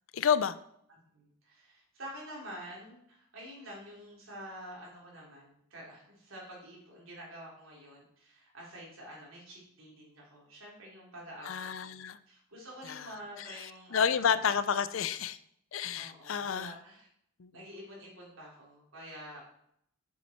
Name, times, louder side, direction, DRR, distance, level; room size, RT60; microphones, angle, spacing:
voice 1, 0.1-0.6 11.4-12.2 12.9-13.1 13.4-15.4 15.7-16.7 17.4-17.5, left 7 dB, 70° left, 14 dB, 0.5 m, -30 dB
voice 2, 1.1-11.5 11.8-12.0 12.3-14.4 16.0-17.1 17.5-19.4, equal, 75° right, -3 dB, 3.6 m, -48 dB
7.4 x 7.3 x 4.4 m, 0.72 s
head